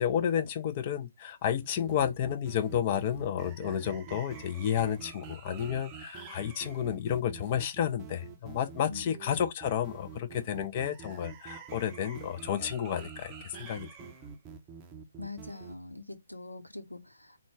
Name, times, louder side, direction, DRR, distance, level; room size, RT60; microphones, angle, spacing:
voice 1, 0.0-13.9, left 9 dB, 30° left, 0.4 m, -31 dB
sound 1, 1.6-15.7, right 6 dB, 20° right, 0.5 m, -47 dB
voice 2, 8.8-9.2 15.2-17.4, left 2 dB, 85° left, 0.7 m, -43 dB
3.7 x 2.1 x 3.5 m
figure-of-eight pair, 135°, 0 cm